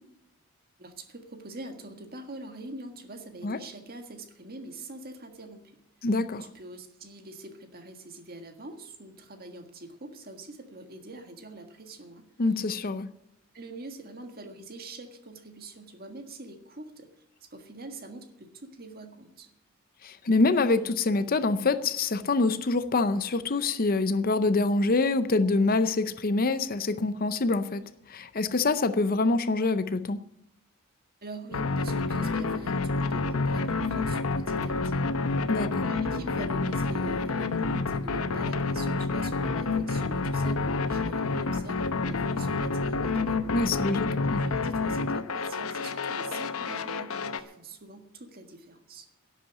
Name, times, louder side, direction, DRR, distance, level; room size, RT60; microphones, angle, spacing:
voice 1, 0.8-5.8 6.4-12.3 13.5-19.5 31.2-35.4 35.8-43.6 44.2-49.1, right 2 dB, 45° right, 5 dB, 1.7 m, -44 dB
voice 2, 6.0-6.5 12.4-13.1 20.0-27.8 28.1-30.2 35.5-35.9 43.5-44.4, left 3 dB, 40° left, 12 dB, 0.6 m, -25 dB
sound 1, 31.5-47.4, left 3 dB, 75° left, 0.9 m, -29 dB
11.0 x 8.5 x 9.8 m, 0.83 s
head